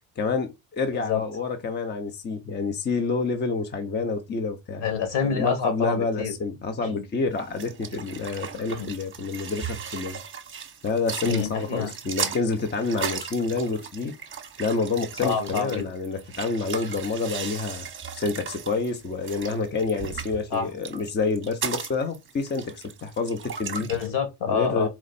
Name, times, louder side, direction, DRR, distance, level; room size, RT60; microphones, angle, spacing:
voice 1, 0.2-4.8 5.3-10.2 10.8-14.1 14.6-17.9 18.1-23.9 24.5-24.9, left 4 dB, 25° left, 0.8 m, -28 dB
voice 2, 0.9-1.2 4.8-6.3 6.8-7.0 8.7-8.9 11.2-11.9 15.2-15.9 20.5-20.7 23.8-24.9, left 6 dB, 60° left, 1.9 m, -27 dB
sound 1, 7.3-24.1, right 7 dB, 25° right, 1.0 m, -36 dB
4.3 x 2.4 x 4.1 m
supercardioid pair, 90°, 45 cm